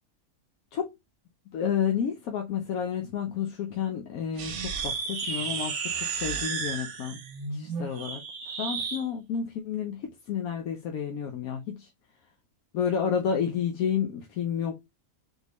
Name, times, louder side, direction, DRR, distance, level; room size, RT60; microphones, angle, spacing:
voice 1, 1.5-7.2 7.5-8.2 8.6-11.9 12.7-14.8, left 7 dB, 75° left, 1.1 m, -30 dB
sound 1, 4.3-9.0, right 5 dB, 90° right, 1.3 m, -33 dB
3.8 x 3.6 x 2.9 m
omnidirectional pair, 1.6 m